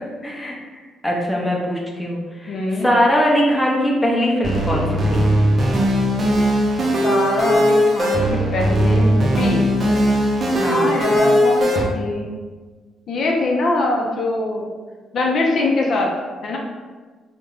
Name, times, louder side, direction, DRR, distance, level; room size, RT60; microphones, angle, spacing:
voice 1, 0.2-0.5 1.0-5.2 10.6-10.9, equal, 10° left, -2 dB, 0.6 m, -21 dB
voice 2, 2.5-2.9 7.0-9.6 10.7-12.3 13.1-14.7 15.1-16.1 16.4-16.6, left 2 dB, 60° left, 0 dB, 0.5 m, -22 dB
sound 1, 4.4-11.8, equal, 40° right, 0.6 m, -18 dB
2.8 x 2.1 x 3.7 m, 1.4 s
cardioid pair, 90°, 0 cm